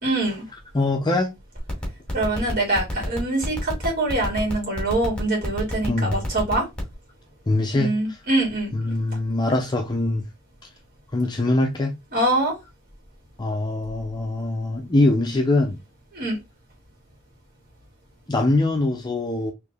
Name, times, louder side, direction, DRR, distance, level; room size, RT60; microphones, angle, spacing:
voice 1, 0.0-0.4 2.1-6.6 7.7-8.7 12.1-12.5 16.1-16.4, right 2 dB, 45° right, 2.6 m, -24 dB
voice 2, 0.7-1.3 5.9-6.2 7.5-8.2 8.7-10.2 11.1-11.9 13.4-15.8 18.3-19.5, left 2 dB, 20° left, 0.5 m, -23 dB
sound 1, 1.6-6.9, left 1 dB, 5° left, 2.0 m, -30 dB
4.0 x 3.1 x 3.4 m
head